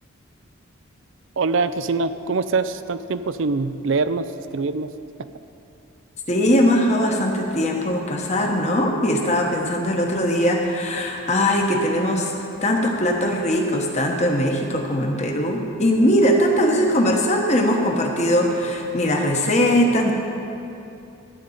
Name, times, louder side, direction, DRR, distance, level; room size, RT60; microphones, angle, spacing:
voice 1, 1.4-4.9 5.2-5.3, right 4 dB, 60° right, 12 dB, 0.5 m, -24 dB
voice 2, 6.3-12.3 12.6-20.1, equal, 30° left, 1 dB, 1.2 m, -20 dB
13.5 x 5.3 x 8.6 m, 2.8 s
head